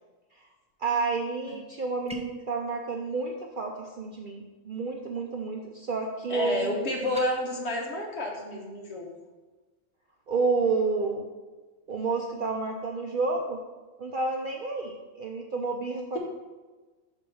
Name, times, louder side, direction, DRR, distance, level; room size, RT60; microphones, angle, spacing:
voice 1, 0.8-6.9 10.3-11.2 11.9-13.6 14.0-16.2, right 4 dB, 55° right, 1 dB, 0.6 m, -30 dB
sound 1, 2.1-2.5 7.0-7.3, right 2 dB, 10° right, 0.3 m, -38 dB
voice 2, 6.3-9.1, left 1 dB, 55° left, -1 dB, 1.4 m, -30 dB
6.1 x 4.5 x 5.4 m, 1.3 s
omnidirectional pair, 1.4 m